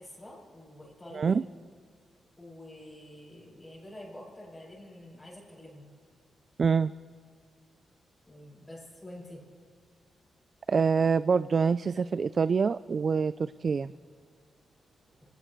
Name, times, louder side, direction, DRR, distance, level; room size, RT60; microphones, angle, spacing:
voice 1, 0.0-1.4 2.4-5.9 8.3-9.4, left 1 dB, 15° left, -7 dB, 5.6 m, -47 dB
voice 2, 6.6-6.9 10.7-13.9, right 5 dB, 45° right, 15 dB, 0.3 m, -25 dB
25.5 x 18.0 x 3.2 m, 2.1 s
cardioid pair, 105°, 0 cm